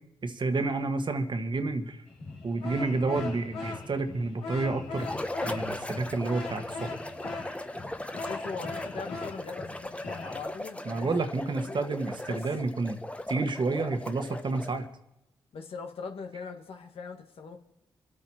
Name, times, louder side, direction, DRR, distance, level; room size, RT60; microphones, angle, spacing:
voice 1, 0.2-2.0 2.4-5.1 5.5-6.9 10.8-13.0 13.3-14.9, right 3 dB, 50° right, 7 dB, 1.5 m, -30 dB
sound 1, 2.1-10.4, left 3 dB, 90° left, 2.7 m, -40 dB
sound 2, 5.0-14.9, left 1 dB, 10° left, 1.0 m, -38 dB
voice 2, 8.2-11.8 12.3-12.5 15.5-17.6, left 4 dB, 75° left, 4 dB, 1.6 m, -41 dB
25.5 x 8.6 x 4.4 m, 0.87 s
supercardioid pair, 45°, 10 cm